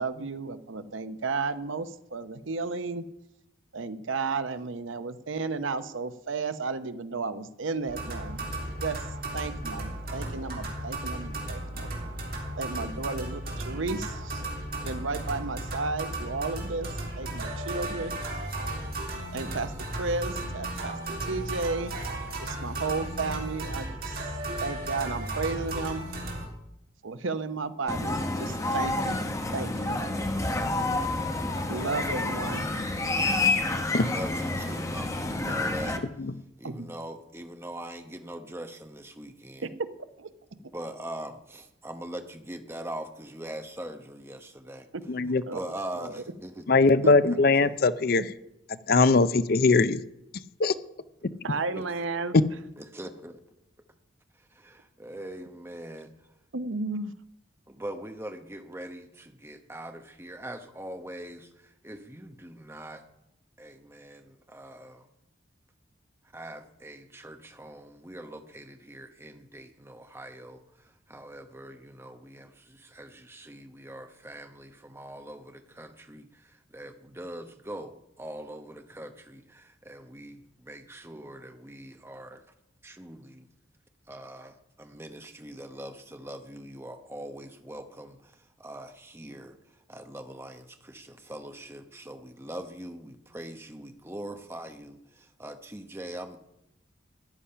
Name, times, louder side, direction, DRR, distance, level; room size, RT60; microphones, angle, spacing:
voice 1, 0.0-3.0 3.7-8.4 8.8-9.0 9.3-11.9 12.6-14.4 14.8-16.9 17.2-18.5 19.3-22.0 22.3-24.2 24.6-26.0 27.0-29.2 29.5-30.0 31.7-32.7 36.6-36.9 39.6-39.7 40.2-40.3 45.5-45.6 46.0-46.1 47.0-47.1 51.4-52.4 56.5-57.1, right 4 dB, 85° right, 12 dB, 0.8 m, -33 dB
sound 1, 7.9-26.5, right 1 dB, 50° right, 3.3 m, -35 dB
voice 2, 12.7-13.1 31.7-31.9 34.0-36.0 36.6-39.7 40.7-44.9 45.5-47.8 51.4-51.9 52.8-53.4 54.4-56.1 57.7-63.0 63.6-65.1 66.3-82.4 82.8-83.5 84.1-89.6 89.9-96.4, right 1 dB, 15° right, 6 dB, 1.0 m, -42 dB
sound 2, 27.9-36.0, left 2 dB, 15° left, 1.0 m, -29 dB
voice 3, 45.1-45.4 46.7-48.3 48.9-50.0 50.6-50.7 52.3-52.4, left 3 dB, 50° left, 15 dB, 0.5 m, -21 dB
14.0 x 10.0 x 5.7 m, 0.84 s
head